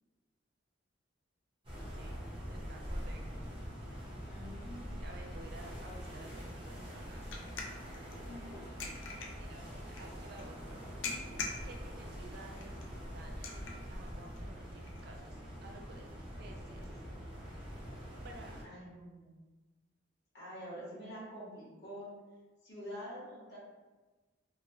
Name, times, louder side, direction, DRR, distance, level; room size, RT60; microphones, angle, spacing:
sound 1, 1.6-18.6, equal, 25° right, 0.8 m, -44 dB
voice 1, 2.5-3.5 5.0-7.4 8.2-8.3 8.6-8.8 9.2-9.7 10.0-10.8 11.6-16.9 18.2-18.6, right 2 dB, 50° right, 2 dB, 0.3 m, -54 dB
voice 2, 4.3-4.9 8.2-8.6 18.6-19.3 20.3-22.1 22.6-23.6, equal, 55° left, -7 dB, 1.2 m, -46 dB
sound 2, 5.6-16.9, left 4 dB, 80° left, 0.5 m, -48 dB
2.9 x 2.2 x 2.7 m, 1.2 s
head